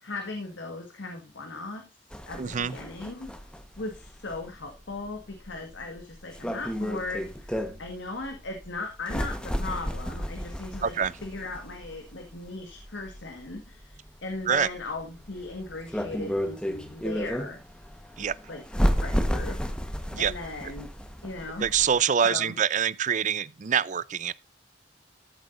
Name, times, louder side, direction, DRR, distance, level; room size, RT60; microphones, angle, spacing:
voice 1, 0.0-1.8 2.3-3.3 3.8-17.6 18.5-18.6 19.0-19.6 19.9-20.9 21.2-21.7 22.2-22.6, left 2 dB, 90° left, 1.7 m, -38 dB
sound 1, 2.1-21.9, equal, 5° left, 1.2 m, -33 dB
voice 2, 2.4-2.7 10.8-11.1 14.5-14.7 18.2-18.4 20.1-20.3 21.6-24.3, right 8 dB, 40° right, 0.5 m, -25 dB
14.0 x 7.8 x 2.6 m
head